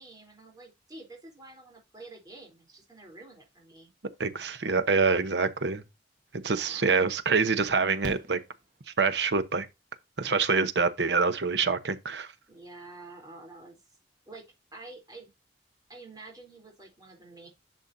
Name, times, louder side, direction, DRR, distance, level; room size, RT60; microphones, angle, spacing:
voice 1, 0.0-3.9 6.5-7.0 12.5-13.8 14.3-15.3 15.9-17.5, right 2 dB, 20° right, 3.6 m, -48 dB
voice 2, 4.2-5.8 6.4-8.4 9.0-9.7 10.2-12.3, right 4 dB, 75° right, 0.9 m, -26 dB
Fireworks, 8.0-9.3 11.1-11.2 11.4-11.5, right 1 dB, 50° right, 1.4 m, -42 dB
11.0 x 6.3 x 2.7 m
head